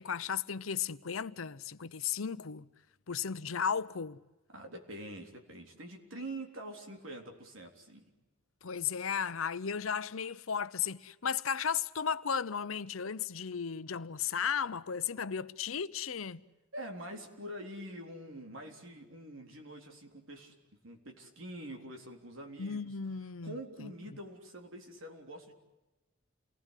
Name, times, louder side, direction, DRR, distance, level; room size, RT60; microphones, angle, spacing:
voice 1, 0.0-2.7 3.1-4.2 8.6-16.4 22.6-23.5 23.8-23.9, left 7 dB, 85° left, 0.8 m, -35 dB
voice 2, 4.5-8.1 16.7-20.5 20.8-22.9 23.4-25.5, right 1 dB, 75° right, 3.7 m, -45 dB
29.0 x 19.5 x 8.3 m
head